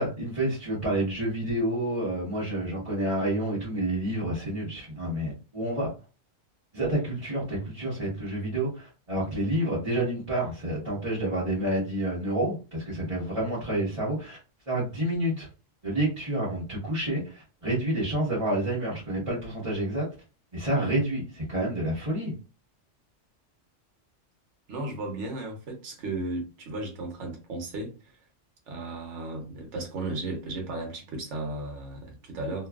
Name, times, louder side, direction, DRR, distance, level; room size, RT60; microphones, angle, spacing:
voice 1, 0.0-5.9 6.7-14.4 14.7-15.5 15.8-20.0 20.5-22.3, right 1 dB, 30° right, 1.2 m, -29 dB
voice 2, 24.7-28.0 28.7-32.7, right 2 dB, 75° right, 1.2 m, -35 dB
3.0 x 2.3 x 2.3 m
omnidirectional pair, 1.3 m